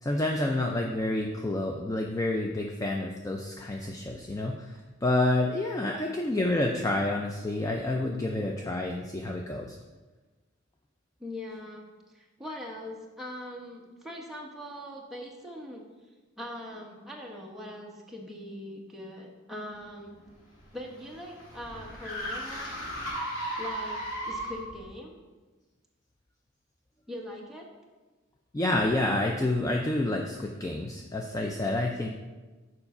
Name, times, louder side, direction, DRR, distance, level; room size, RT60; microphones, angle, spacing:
voice 1, 0.0-9.8 28.5-32.1, left 2 dB, 15° left, 1 dB, 0.4 m, -29 dB
voice 2, 11.2-11.8 12.1-15.8 16.4-20.2 20.7-22.8 23.6-25.2 27.1-27.7, left 1 dB, ahead, -2 dB, 1.0 m, -41 dB
sound 1, 20.3-24.8, right 1 dB, 80° left, 2.0 m, -36 dB
7.1 x 4.8 x 5.4 m, 1.3 s
head